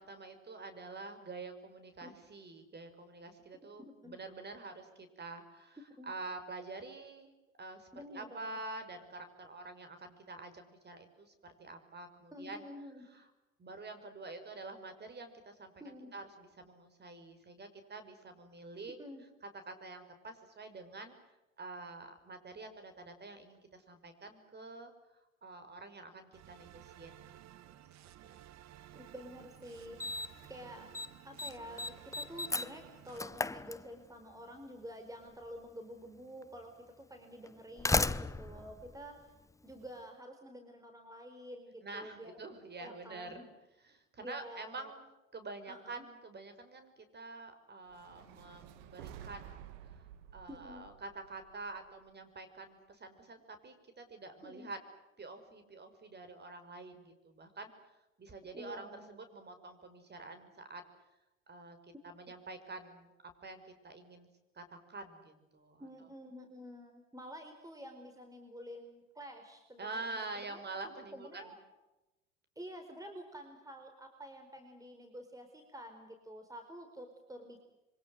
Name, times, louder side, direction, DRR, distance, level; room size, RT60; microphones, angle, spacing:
voice 1, 0.0-5.8 6.0-7.3 7.6-12.6 13.1-13.3 13.6-15.7 16.1-19.0 19.7-21.2 21.6-24.9 25.4-27.1 27.6-27.8 41.8-43.5 43.8-45.0 45.3-49.6 49.9-50.0 50.3-54.8 55.2-57.7 58.2-60.9 61.5-61.8 62.0-63.1 63.4-64.3 64.5-65.9 69.8-71.5, right 3 dB, 25° right, 8 dB, 5.8 m, -47 dB
voice 2, 7.9-8.6 12.3-13.0 15.8-16.1 19.0-19.2 28.9-30.0 30.5-30.9 31.2-39.3 39.6-42.3 42.8-43.5 44.2-44.9 45.7-46.0 50.5-50.9 54.4-54.7 58.5-59.1 65.8-70.6 71.1-71.6 72.6-77.6, equal, 10° right, 6 dB, 4.4 m, -49 dB
sound 1, 26.3-33.2, right 12 dB, 45° right, 1.4 m, -55 dB
Slam, 29.2-29.3 30.0-30.5 30.7-31.1 31.4-34.3 35.4-35.5 36.4-36.5 37.4-39.8, left 3 dB, 10° left, 0.9 m, -35 dB
sound 2, 47.9-52.1, right 10 dB, 65° right, 2.4 m, -52 dB
27.0 x 24.5 x 8.0 m, 1.0 s
hypercardioid pair, 80°, 38 cm